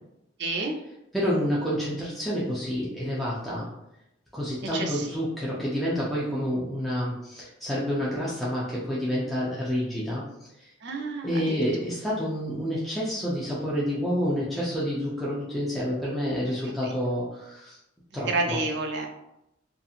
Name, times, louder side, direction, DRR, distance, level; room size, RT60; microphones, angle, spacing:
voice 1, 0.4-0.7 4.7-5.1 10.8-11.6 16.8-16.9 18.3-19.1, right 3 dB, 65° right, 2 dB, 0.5 m, -29 dB
voice 2, 1.1-3.7 4.3-10.2 10.6-10.7 11.2-17.8 18.1-18.6, equal, ahead, -8 dB, 0.5 m, -28 dB
2.8 x 2.5 x 2.4 m, 0.85 s
head